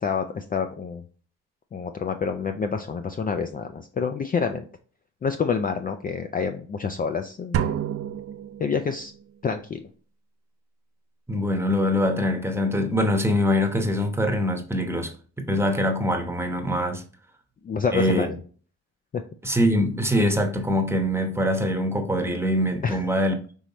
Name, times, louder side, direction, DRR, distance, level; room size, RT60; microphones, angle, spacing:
voice 1, 0.0-1.0 1.7-4.7 5.2-7.7 8.6-9.1 9.4-9.8 17.6-18.4 19.1-19.2 22.8-23.0, left 6 dB, 30° left, 0.4 m, -27 dB
sound 1, 7.5-9.2, right 9 dB, 50° right, 0.5 m, -29 dB
voice 2, 11.3-15.1 15.4-17.0 17.9-18.3 19.4-23.4, equal, 10° right, 0.9 m, -23 dB
5.4 x 3.2 x 3.0 m
cardioid pair, 90°, 30 cm